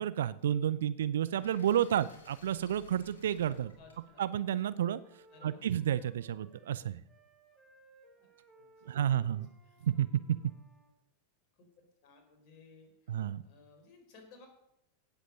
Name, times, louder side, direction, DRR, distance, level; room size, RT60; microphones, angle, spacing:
voice 1, 0.0-3.7 4.2-5.0 5.4-7.0 8.9-9.5 9.8-10.1 13.1-13.4, right 10 dB, 60° right, 17 dB, 0.5 m, -31 dB
sound 1, 1.4-5.4, left 2 dB, 70° left, 3.3 m, -58 dB
Wind instrument woodwind instrument, 3.1-6.8 7.0-10.9, right 2 dB, ahead, 4.6 m, -63 dB
voice 2, 3.8-4.2 5.3-5.6 8.2-9.3 9.6-9.9 11.5-14.5, left 4 dB, 40° left, 3 dB, 4.6 m, -59 dB
17.5 x 8.2 x 5.3 m, 0.80 s
figure-of-eight pair, 90°, 0 cm